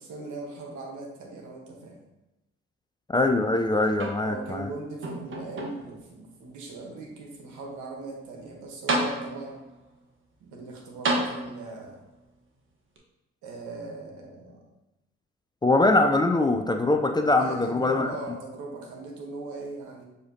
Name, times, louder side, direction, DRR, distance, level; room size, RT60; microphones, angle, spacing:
voice 1, 0.0-2.0 4.2-9.6 10.4-12.0 13.4-14.7 17.4-20.0, right 3 dB, 75° right, 1 dB, 1.0 m, -39 dB
voice 2, 3.1-4.7 15.6-18.1, left 2 dB, 15° left, 5 dB, 0.3 m, -22 dB
sound 1, 3.9-4.6 5.0-6.0 6.7-6.8 8.4-8.5 8.9-9.6 11.0-11.9 13.0-13.1, right 2 dB, 40° right, 0.9 m, -30 dB
6.4 x 2.8 x 2.6 m, 0.92 s
hypercardioid pair, 50°, 30 cm